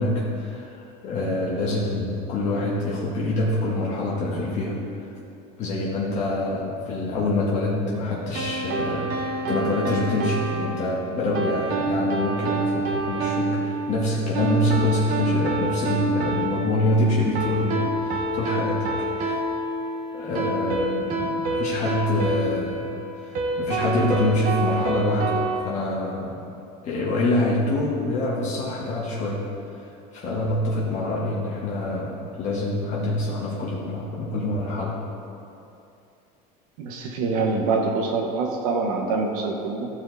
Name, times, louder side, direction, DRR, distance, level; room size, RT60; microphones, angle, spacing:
voice 1, 0.0-4.8 5.6-18.9 19.1-19.4 20.1-22.9 23.1-26.4 26.8-29.4 29.8-29.9 30.1-35.0, left 2 dB, 40° left, -6 dB, 1.6 m, -26 dB
sound 1, 8.3-25.6, right 2 dB, 50° right, 1.1 m, -27 dB
voice 2, 36.8-39.9, right 4 dB, 75° right, 2 dB, 1.2 m, -25 dB
14.5 x 4.9 x 4.0 m, 2.7 s
cardioid pair, 150°, 19 cm